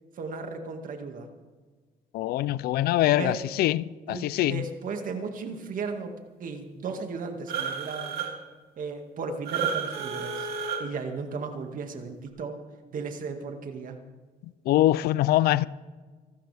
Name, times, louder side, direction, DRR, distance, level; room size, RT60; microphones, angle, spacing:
voice 1, 0.2-1.3 3.2-3.4 4.1-8.2 8.8-10.5 10.8-12.6 12.9-14.0, right 4 dB, 60° right, 2.1 m, -35 dB
voice 2, 2.1-4.6 14.7-15.7, left 14 dB, 85° left, 0.5 m, -23 dB
sound 1, 7.5-8.3 9.5-10.8, right 7 dB, 85° right, 2.9 m, -31 dB
26.0 x 12.5 x 3.5 m
cardioid pair, 100°, 16 cm